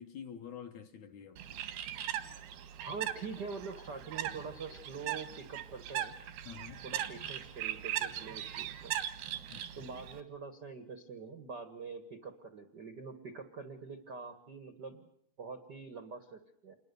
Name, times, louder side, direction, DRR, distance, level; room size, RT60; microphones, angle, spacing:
voice 1, 0.0-1.7 6.5-6.8 9.5-9.9, left 8 dB, 65° left, 2.0 m, -48 dB
Bird, 1.4-10.2, right 11 dB, 90° right, 3.6 m, -40 dB
voice 2, 2.8-6.1 6.8-9.0 9.8-15.1 15.4-16.8, right 5 dB, 70° right, 0.9 m, -45 dB
28.0 x 21.5 x 6.9 m
omnidirectional pair, 4.4 m